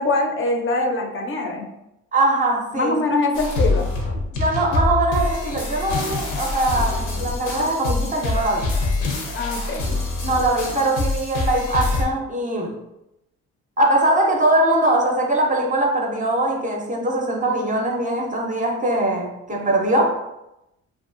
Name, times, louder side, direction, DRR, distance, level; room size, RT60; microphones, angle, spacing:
voice 1, 0.0-1.7 2.7-3.9 9.3-9.9, left 2 dB, 45° left, 0.5 m, -23 dB
voice 2, 2.1-2.9 4.3-8.7 10.2-12.7 13.8-20.2, right 1 dB, 25° right, 0.5 m, -21 dB
sound 1, 3.3-12.0, left 2 dB, 85° left, 0.7 m, -25 dB
2.6 x 2.3 x 2.4 m
cardioid pair, 90°, 30 cm